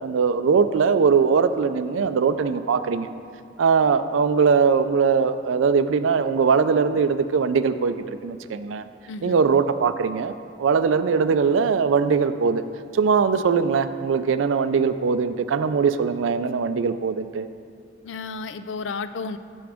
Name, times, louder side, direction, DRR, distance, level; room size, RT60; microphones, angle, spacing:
voice 1, 0.0-3.1 3.6-8.9 9.2-12.6 12.9-17.5, right 5 dB, 90° right, 11 dB, 0.4 m, -21 dB
voice 2, 9.1-9.4 18.0-19.4, left 4 dB, 70° left, 11 dB, 0.4 m, -32 dB
15.0 x 6.1 x 3.5 m, 2.5 s
head